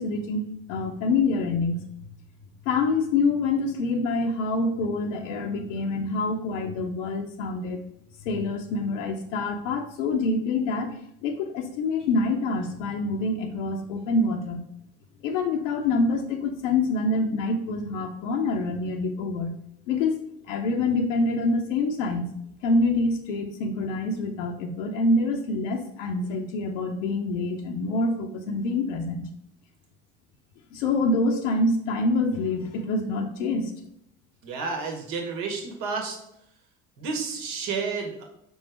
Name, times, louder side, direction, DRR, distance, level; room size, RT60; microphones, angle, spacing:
voice 1, 0.0-1.8 2.7-7.8 8.2-14.6 15.2-22.3 22.6-29.3 30.7-33.7, left 3 dB, 80° left, 2 dB, 0.8 m, -26 dB
voice 2, 34.4-36.2 37.0-38.2, right 4 dB, 65° right, 2 dB, 1.8 m, -31 dB
5.3 x 3.9 x 4.9 m, 0.74 s
hypercardioid pair, 60°, 37 cm